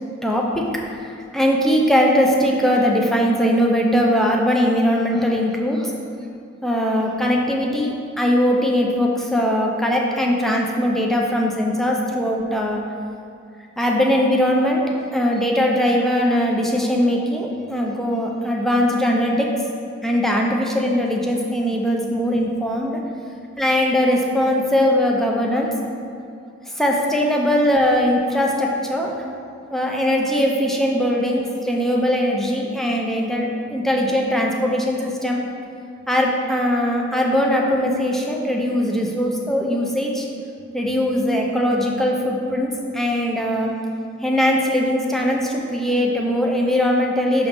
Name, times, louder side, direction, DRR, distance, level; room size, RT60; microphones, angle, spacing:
voice 1, 0.2-5.9 6.6-12.8 13.8-14.8 15.1-19.3 20.0-23.0 23.6-25.7 26.7-29.1 29.7-35.4 36.1-40.2 40.7-43.7 44.2-47.5, equal, ahead, -1 dB, 0.5 m, -20 dB
6.1 x 3.1 x 5.1 m, 2.5 s
head